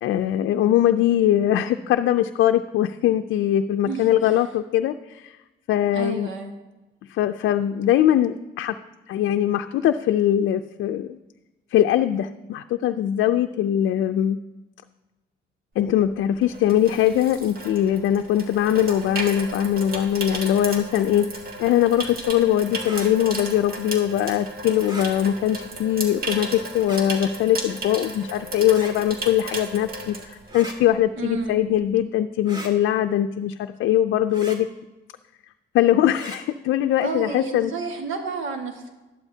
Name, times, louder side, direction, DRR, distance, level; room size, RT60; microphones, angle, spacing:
voice 1, 0.0-5.4 5.7-6.3 7.1-8.7 9.1-11.2 11.7-14.4 15.8-21.3 21.6-34.7 35.7-37.7, left 11 dB, 75° left, 6 dB, 0.5 m, -21 dB
voice 2, 3.8-4.4 5.9-6.5 31.2-31.6 37.0-38.9, right 4 dB, 80° right, 3 dB, 1.7 m, -31 dB
Water tap faucet / Sink (filling or washing), 15.9-30.9 31.2-31.5, right 2 dB, 50° right, 1.9 m, -35 dB
sound 1, 22.8-23.1 24.8-25.1 26.7-27.0 28.7-28.9 30.5-30.8 32.5-32.7 34.3-34.6 36.1-36.4, right 1 dB, 20° right, 1.9 m, -38 dB
12.5 x 11.5 x 2.8 m, 1.1 s
cardioid pair, 90°, 20 cm